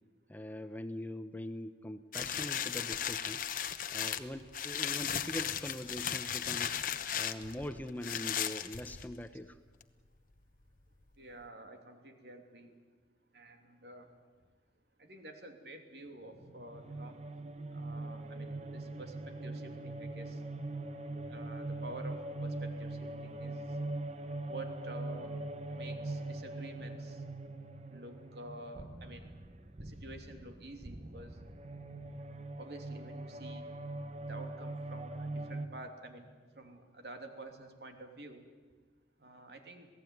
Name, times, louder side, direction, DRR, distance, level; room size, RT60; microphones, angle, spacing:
voice 1, 0.3-3.4 3.9-6.7 7.1-9.6, left 1 dB, 10° left, 9 dB, 0.8 m, -42 dB
sound 1, 2.1-9.3 9.8-9.9, left 9 dB, 50° left, 1.0 m, -36 dB
voice 2, 11.2-12.7 13.3-14.1 15.0-17.2 17.7-19.1 19.4-20.4 21.2-23.6 24.5-25.3 25.7-27.2 27.9-29.3 29.8-31.4 32.6-33.6 34.3-38.4 39.2-39.9, right 2 dB, 65° right, 5 dB, 3.0 m, -49 dB
sound 2, 16.3-35.7, right 2 dB, 40° right, 1.1 m, -42 dB
27.0 x 18.0 x 9.5 m, 1.4 s
head